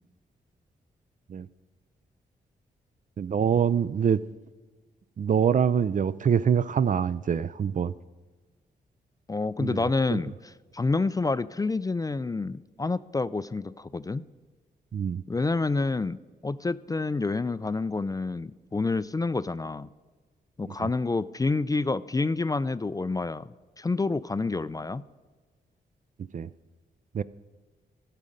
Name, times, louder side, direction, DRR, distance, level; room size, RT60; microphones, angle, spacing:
voice 1, 3.2-4.2 5.2-7.9 9.6-9.8 10.1-10.2 14.9-15.2 20.8-20.9 26.3-26.5 27.1-27.2, right 7 dB, 45° right, 0.4 m, -25 dB
voice 2, 9.3-10.3 10.7-14.3 15.3-19.9 20.6-23.5 23.8-25.0, left 3 dB, 20° left, 0.4 m, -28 dB
13.0 x 7.4 x 5.2 m
supercardioid pair, 45°, 18 cm